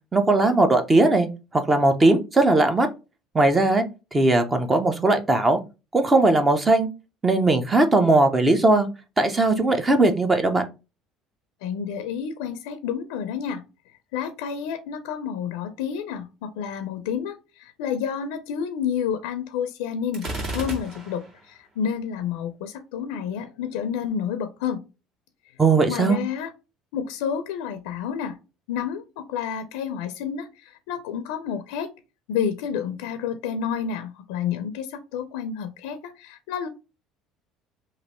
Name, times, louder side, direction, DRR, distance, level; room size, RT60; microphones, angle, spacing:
voice 1, 0.1-1.3 1.5-2.9 3.3-3.8 4.1-5.6 5.9-6.9 7.2-8.9 9.2-10.6 25.6-26.2, right 2 dB, 20° right, 7 dB, 0.7 m, -19 dB
voice 2, 11.6-13.6 14.1-20.3 20.5-24.8 25.9-26.5 26.9-28.4 28.7-31.9 32.3-36.7, left 7 dB, 90° left, 9 dB, 0.5 m, -30 dB
Gunshot gunfire, 20.1-21.4, right 1 dB, 50° right, 1.8 m, -32 dB
3.2 x 2.5 x 4.1 m, 0.29 s
supercardioid pair, 110°, 0 cm